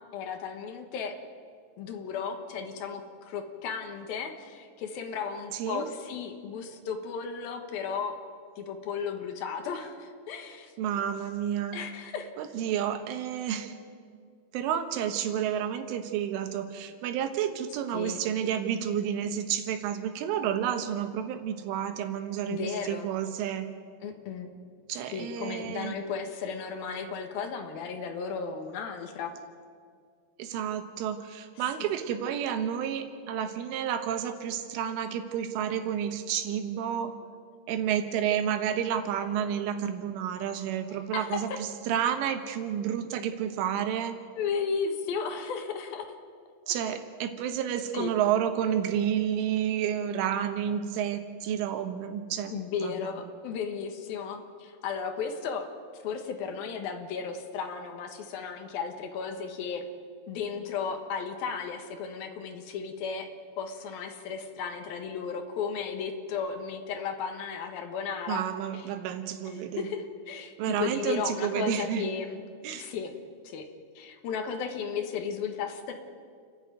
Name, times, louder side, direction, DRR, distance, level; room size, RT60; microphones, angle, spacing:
voice 1, 0.1-1.1 1.8-8.2 8.6-10.7 11.7-12.3 17.9-18.2 22.5-23.1 24.0-24.5 25.1-29.3 31.8-31.9 40.9-41.6 44.3-46.1 46.7-46.8 47.9-48.1 52.5-55.7 56.0-59.8 60.3-63.3 63.6-68.4 68.7-68.8 69.5-72.4 72.7-73.1 73.4-73.7 74.0-75.9, left 6 dB, 65° left, 5 dB, 2.7 m, -35 dB
voice 2, 5.5-5.9 10.8-11.8 12.4-13.7 14.5-23.7 24.9-26.0 30.4-37.1 37.7-44.2 46.7-52.5 52.8-53.1 68.3-69.9 70.6-72.1 72.6-72.9, right 9 dB, 90° right, 8 dB, 3.8 m, -30 dB
29.0 x 11.0 x 9.3 m, 2.1 s
omnidirectional pair, 5.5 m